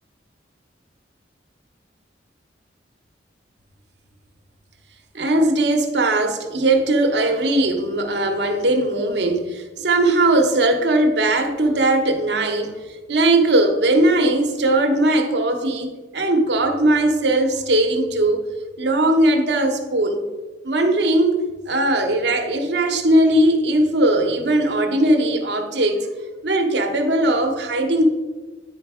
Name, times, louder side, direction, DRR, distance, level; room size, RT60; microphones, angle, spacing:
voice 1, 5.1-12.7 13.1-18.4 18.8-20.3 20.6-21.4 21.7-26.1 26.4-28.0, right 1 dB, 65° right, 1.0 m, -19 dB
9.6 x 4.6 x 4.9 m
head